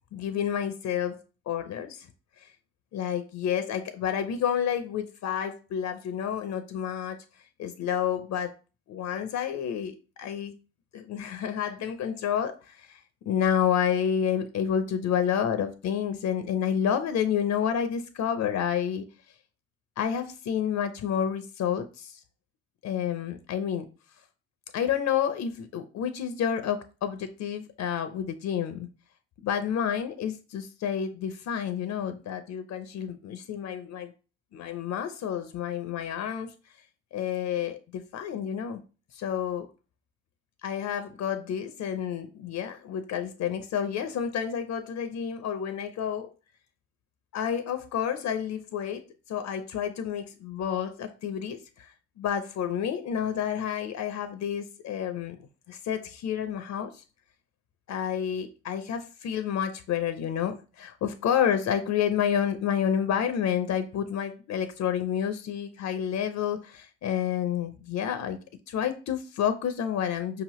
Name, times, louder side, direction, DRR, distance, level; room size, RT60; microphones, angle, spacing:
voice 1, 0.1-2.1 2.4-2.5 2.9-7.2 7.6-8.5 8.9-10.5 10.9-13.0 13.3-19.0 20.0-22.2 22.8-23.9 24.7-28.9 29.4-34.1 34.5-36.5 37.1-38.8 39.1-39.7 40.6-46.3 47.3-51.9 52.2-55.4 55.7-57.0 57.9-68.4 68.7-70.4, left 8 dB, 65° left, 0.6 m, -29 dB
5.1 x 2.9 x 3.0 m
cardioid pair, 90°, 30 cm